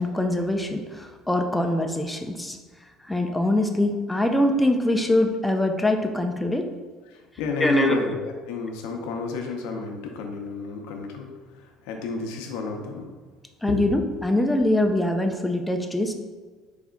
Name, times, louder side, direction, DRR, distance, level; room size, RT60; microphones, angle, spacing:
voice 1, 0.0-2.6 3.1-6.7 7.6-8.0 13.6-16.1, left 1 dB, 5° left, 3 dB, 0.4 m, -23 dB
voice 2, 7.1-11.3 11.6-13.1 13.7-13.8, left 4 dB, 85° left, 3 dB, 0.7 m, -31 dB
4.1 x 3.5 x 3.7 m, 1.4 s
cardioid pair, 125°, 0 cm